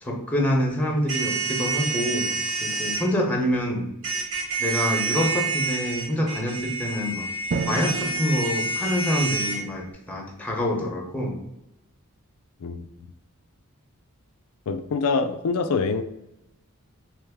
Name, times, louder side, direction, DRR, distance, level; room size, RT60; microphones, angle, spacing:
voice 1, 0.0-2.3 2.6-3.9 4.6-7.3 7.7-11.4, equal, 5° left, 0.7 m, -26 dB
sound 1, 1.1-3.0 4.0-9.6, right 3 dB, 75° right, 1.4 m, -28 dB
Drum, 7.5-10.0, right 4 dB, 45° right, 0.4 m, -33 dB
voice 2, 14.7-16.0, left 4 dB, 75° left, 0.4 m, -25 dB
3.3 x 3.0 x 3.4 m
head